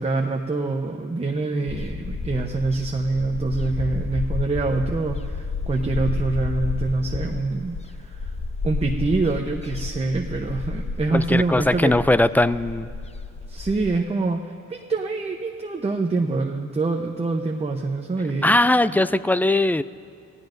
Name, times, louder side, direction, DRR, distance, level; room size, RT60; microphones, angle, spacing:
voice 1, 0.0-8.3 8.6-12.0 13.5-14.4 14.7-18.5 18.9-19.0, right 3 dB, 20° right, 2 dB, 0.9 m, -25 dB
sound 1, 1.7-14.0, left 3 dB, 20° left, 0.8 m, -31 dB
voice 2, 11.1-12.9 18.4-19.8, left 2 dB, 5° left, 15 dB, 0.3 m, -19 dB
27.5 x 16.5 x 2.6 m, 2.3 s
cardioid pair, 90°, 30 cm